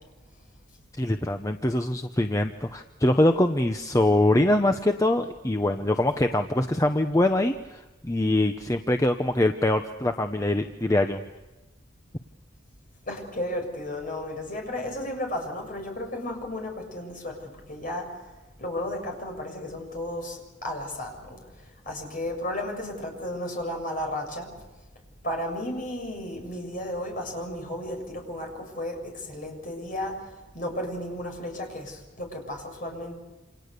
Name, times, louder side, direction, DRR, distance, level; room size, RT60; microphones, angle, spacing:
voice 1, 1.0-11.2, left 1 dB, 15° left, 6 dB, 0.8 m, -23 dB
voice 2, 13.1-17.3 17.7-18.0 18.6-21.4 21.9-24.5 25.2-28.5 28.8-28.9 29.3-30.1 30.5-33.1, left 1 dB, 45° left, 2 dB, 6.8 m, -33 dB
28.5 x 27.5 x 6.8 m, 1.1 s
head